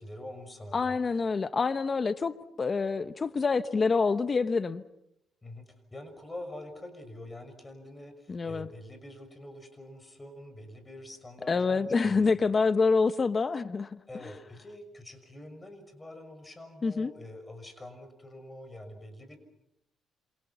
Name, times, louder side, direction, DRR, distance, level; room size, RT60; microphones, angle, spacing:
voice 1, 0.0-1.0 5.4-5.6 5.9-12.5 14.1-19.4, left 1 dB, 20° left, 6.1 m, -45 dB
voice 2, 0.7-4.8 8.3-8.7 11.5-14.0 16.8-17.1, left 4 dB, 35° left, 1.0 m, -27 dB
28.0 x 27.5 x 5.8 m
cardioid pair, 90°, 0 cm